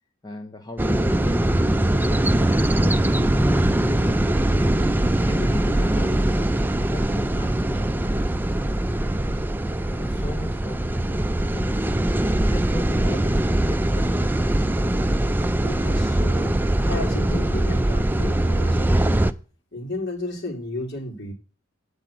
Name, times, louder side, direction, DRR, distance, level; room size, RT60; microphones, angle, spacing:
voice 1, 0.2-1.5 1.9-4.5 5.0-11.8 12.2-14.5, left 1 dB, 20° left, 0.9 m, -38 dB
sound 1, 0.8-19.3, right 1 dB, 10° right, 0.4 m, -22 dB
voice 2, 15.6-19.2 19.7-21.3, left 2 dB, 55° left, 3.5 m, -33 dB
9.1 x 4.9 x 7.3 m
head